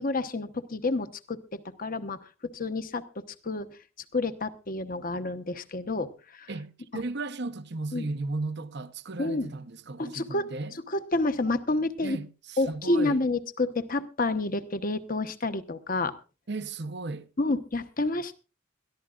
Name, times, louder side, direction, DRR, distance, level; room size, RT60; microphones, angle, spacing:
voice 1, 0.0-3.7 4.1-6.5 6.9-7.0 7.9-8.1 9.2-9.5 10.0-10.5 10.9-12.2 12.6-16.1 17.4-18.4, left 2 dB, 40° left, 1.0 m, -29 dB
voice 2, 6.5-10.7 12.0-13.2 16.5-17.3, right 2 dB, 55° right, 0.8 m, -35 dB
22.0 x 14.0 x 2.5 m
head